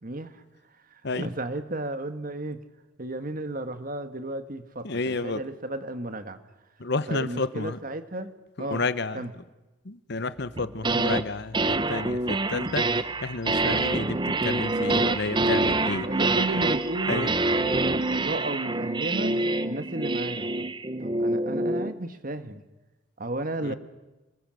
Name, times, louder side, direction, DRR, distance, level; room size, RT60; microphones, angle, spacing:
voice 1, 0.0-0.4 0.9-2.6 3.0-6.4 7.1-8.3 8.6-8.8 9.1-9.3 16.1-17.2 17.5-19.4 19.6-20.5 21.0-22.6 23.2-23.8, right 2 dB, 45° right, 9 dB, 1.5 m, -33 dB
voice 2, 4.8-5.4 6.8-7.8 8.6-9.3 9.8-12.9 13.2-16.1 17.1-17.3 23.6-23.7, left 3 dB, 55° left, 14 dB, 0.9 m, -30 dB
sound 1, 10.6-11.2 11.5-21.9, right 2 dB, 25° right, 0.8 m, -26 dB
27.0 x 19.5 x 7.7 m, 1.1 s
head